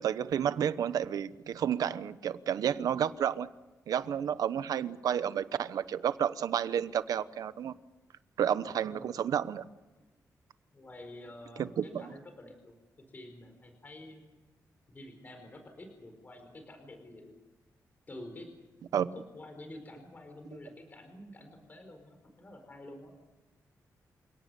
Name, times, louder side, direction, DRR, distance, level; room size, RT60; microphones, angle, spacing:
voice 1, 0.0-3.5 3.9-7.7 8.4-9.7 11.6-12.1 18.9-19.1, right 9 dB, 85° right, 14 dB, 1.0 m, -31 dB
voice 2, 8.7-9.2 10.7-12.8 13.1-14.2 14.9-17.3 18.1-18.5 18.9-23.1, left 1 dB, 30° left, 5 dB, 4.7 m, -49 dB
29.0 x 18.0 x 7.0 m, 1.1 s
wide cardioid pair, 135°, 6 cm